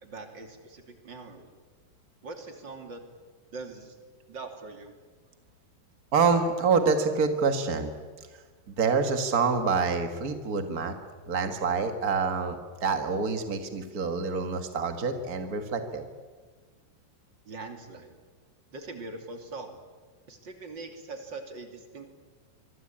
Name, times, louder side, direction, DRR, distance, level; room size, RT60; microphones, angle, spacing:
voice 1, 0.0-1.5 2.2-3.0 3.5-4.0 4.3-4.9 17.4-18.2 18.7-19.8 20.3-22.1, right 3 dB, 30° right, 5 dB, 3.0 m, -42 dB
voice 2, 6.1-7.9 8.7-10.9 11.3-16.0, right 5 dB, 55° right, 6 dB, 0.9 m, -26 dB
25.5 x 23.0 x 8.8 m, 1.5 s
omnidirectional pair, 4.6 m